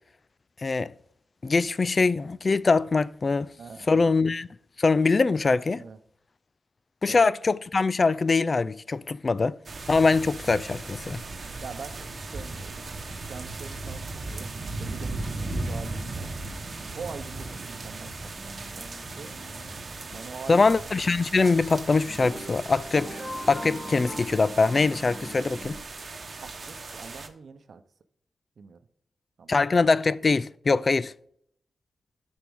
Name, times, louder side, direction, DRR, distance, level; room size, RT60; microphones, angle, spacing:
voice 1, 0.6-0.9 1.4-3.5 3.9-4.5 4.8-5.8 7.0-9.6 9.9-11.2 20.5-23.2 23.5-25.8 29.5-31.1, left 4 dB, 40° left, 0.3 m, -23 dB
voice 2, 3.6-4.1 5.8-6.0 7.0-7.2 11.6-12.8 13.3-16.3 16.9-19.3 20.1-20.6 26.4-27.8 28.6-28.8 29.4-29.5, right 5 dB, 65° right, 0.8 m, -43 dB
sound 1, 9.7-27.3, right 2 dB, 45° right, 1.1 m, -37 dB
sound 2, 18.2-20.5 22.1-25.8, equal, 15° left, 1.8 m, -42 dB
13.0 x 4.5 x 3.6 m
cardioid pair, 90°, 0 cm